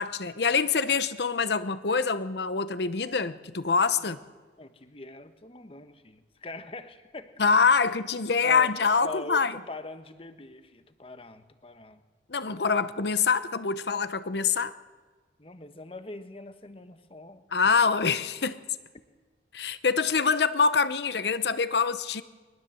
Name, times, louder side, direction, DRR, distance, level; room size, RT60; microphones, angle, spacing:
voice 1, 0.0-4.2 7.4-9.5 12.3-14.7 17.5-18.6 19.5-22.2, left 5 dB, 70° left, 0.8 m, -25 dB
voice 2, 4.6-7.4 7.8-8.0 8.4-8.7 9.0-12.0 15.4-17.4, left 2 dB, 30° left, 1.2 m, -43 dB
22.5 x 20.5 x 7.8 m
head